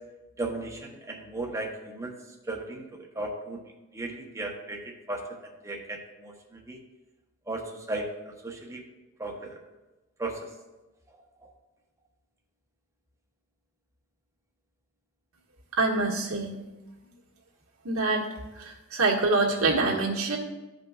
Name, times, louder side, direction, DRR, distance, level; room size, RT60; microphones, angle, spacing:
voice 1, 0.4-2.1 2.5-3.6 3.9-5.2 5.6-6.8 7.5-8.8 9.2-9.6 10.2-10.5 11.4-11.5, right 2 dB, 15° right, 1 dB, 0.8 m, -36 dB
voice 2, 15.7-16.5 17.8-18.3 18.6-20.4, right 3 dB, 90° right, -2 dB, 1.6 m, -25 dB
14.0 x 5.2 x 2.3 m, 1.1 s
head